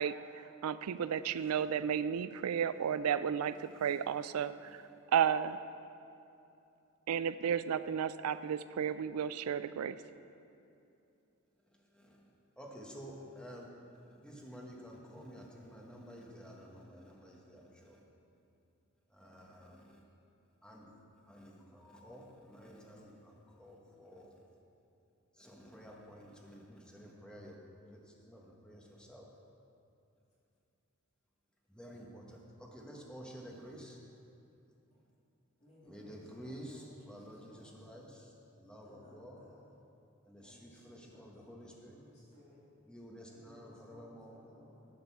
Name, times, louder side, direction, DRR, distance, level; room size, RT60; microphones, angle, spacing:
voice 1, 0.0-4.8 5.1-5.6 7.1-10.0, right 8 dB, 90° right, 15 dB, 0.4 m, -33 dB
voice 2, 12.6-13.7 14.1-18.0 19.1-20.0 20.6-20.9 21.3-24.3 25.4-27.6 27.9-29.3 31.7-32.4 32.7-34.0 35.8-38.3 38.6-39.4 40.2-42.0 42.9-44.5, equal, 5° left, -2 dB, 1.2 m, -51 dB
voice 3, 35.6-37.9 38.8-39.7 40.4-41.3 41.6-42.6 43.3-44.9, left 1 dB, 30° left, -8 dB, 2.3 m, -60 dB
11.0 x 7.8 x 4.6 m, 2.7 s
head